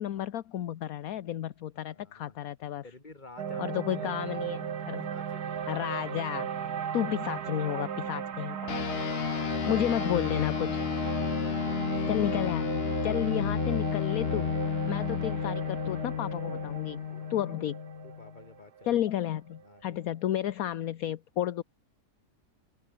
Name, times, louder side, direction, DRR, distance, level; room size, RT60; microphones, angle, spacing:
voice 1, 0.0-2.8 3.6-5.1 5.7-6.5 6.9-8.7 9.7-10.8 12.1-14.5 14.9-17.0 17.3-17.8 18.8-21.6, left 11 dB, 65° left, 1.2 m, -32 dB
voice 2, 1.8-2.4 2.8-5.6 11.2-13.4 14.6-15.2 17.1-17.7 18.0-19.0 19.6-20.0, left 3 dB, 25° left, 2.9 m, -53 dB
sound 1, 3.4-19.6, right 8 dB, 75° right, 1.9 m, -36 dB
sound 2, 8.7-18.4, left 8 dB, 45° left, 0.9 m, -32 dB
open air
omnidirectional pair, 1.7 m